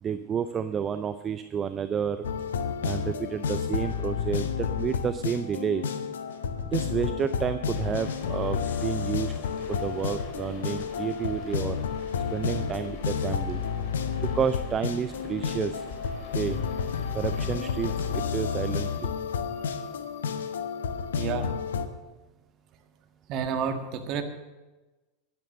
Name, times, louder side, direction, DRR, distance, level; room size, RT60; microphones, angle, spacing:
voice 1, 0.0-2.3 2.8-5.9 6.7-9.3 9.7-11.8 12.3-13.6 14.2-15.8 16.3-16.6 17.1-19.1, right 7 dB, 30° right, 12 dB, 0.5 m, -30 dB
sound 1, 2.2-21.9, left 6 dB, 70° left, 0.9 m, -31 dB
Rain on Windows Interior B, 7.7-18.7, left 4 dB, 50° left, 3.8 m, -45 dB
voice 2, 21.2-21.5 23.3-24.2, right 7 dB, 45° right, 6 dB, 1.7 m, -30 dB
12.5 x 11.0 x 6.5 m, 1.2 s
figure-of-eight pair, 85°, 0 cm